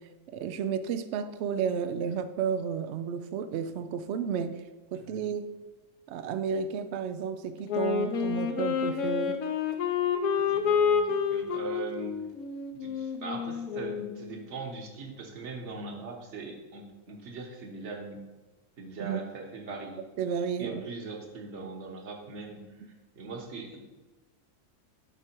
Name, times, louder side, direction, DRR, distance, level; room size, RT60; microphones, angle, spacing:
voice 1, 0.3-4.6 4.9-5.5 6.1-9.4 19.0-19.2 20.2-20.8, right 7 dB, 75° right, 11 dB, 0.6 m, -32 dB
Wind instrument woodwind instrument, 7.7-14.3, left 6 dB, 70° left, 1.2 m, -29 dB
voice 2, 10.3-12.2 12.7-18.2 18.8-20.0 20.6-23.8, right 3 dB, 50° right, 2 dB, 1.4 m, -41 dB
10.0 x 4.8 x 4.5 m, 1.2 s
omnidirectional pair, 1.7 m